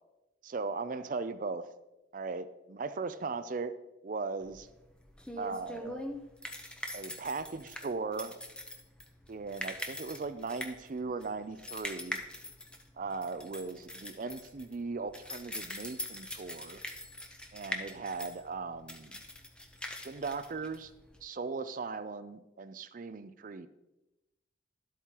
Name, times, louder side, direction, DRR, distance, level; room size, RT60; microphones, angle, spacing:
voice 1, 0.4-1.6 2.1-3.7 4.0-4.7 5.4-6.1 6.9-8.4 9.3-12.3 13.0-16.8 17.5-19.2 20.0-20.9 21.2-23.7, right 4 dB, 45° right, 12 dB, 0.4 m, -38 dB
sound 1, 4.5-21.2, left 1 dB, 5° left, 0.7 m, -43 dB
12.0 x 8.2 x 3.0 m, 0.97 s
head